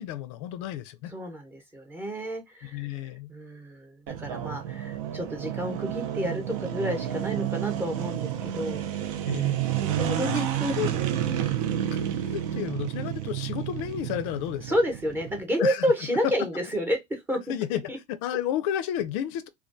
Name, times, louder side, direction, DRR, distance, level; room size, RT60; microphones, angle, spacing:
voice 1, 0.0-1.1 2.6-3.3 9.2-9.6 10.3-10.9 11.9-14.7 15.6-15.9 17.5-17.8 18.1-19.5, left 11 dB, 70° left, 0.4 m, -32 dB
voice 2, 1.1-8.9 9.8-11.0 11.3-11.9 14.6-17.4 17.9-18.0, equal, 10° right, 0.9 m, -30 dB
sound 1, 4.1-15.4, right 11 dB, 80° right, 0.5 m, -30 dB
2.3 x 2.2 x 2.5 m
supercardioid pair, 120°, 16 cm